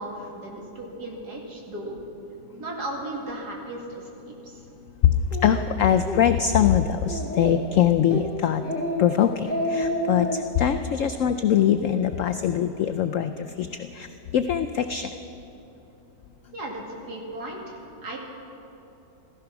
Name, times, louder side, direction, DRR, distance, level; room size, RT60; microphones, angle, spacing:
voice 1, 0.0-2.0 2.6-4.6 16.5-18.2, right 1 dB, 60° right, -1 dB, 2.8 m, -36 dB
voice 2, 5.0-8.6 9.0-15.1, left 9 dB, 85° left, 8 dB, 0.6 m, -22 dB
Speech, 5.3-5.5 5.9-6.2 6.6-6.7 7.1-7.7 8.1-8.3 8.6-9.0 9.3-10.4, left 1 dB, 5° left, 2.3 m, -28 dB
15.0 x 14.5 x 5.9 m, 3.0 s
omnidirectional pair, 1.9 m